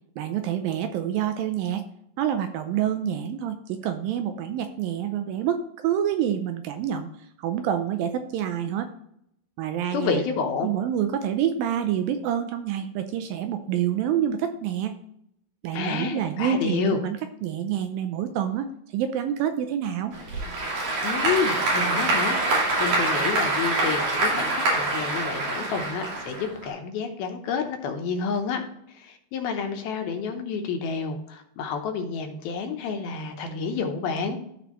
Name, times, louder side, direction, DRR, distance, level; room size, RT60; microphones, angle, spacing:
voice 1, 0.2-1.8 2.2-8.9 9.6-10.2 10.6-15.0 15.6-18.7 18.9-20.1, right 9 dB, 80° right, 8 dB, 2.2 m, -27 dB
voice 2, 9.9-10.7 15.7-17.0 21.0-34.4, left 5 dB, 75° left, 4 dB, 2.8 m, -29 dB
Applause / Crowd, 20.1-26.7, right 2 dB, 60° right, 4.2 m, -25 dB
13.5 x 5.1 x 3.0 m, 0.74 s
omnidirectional pair, 4.5 m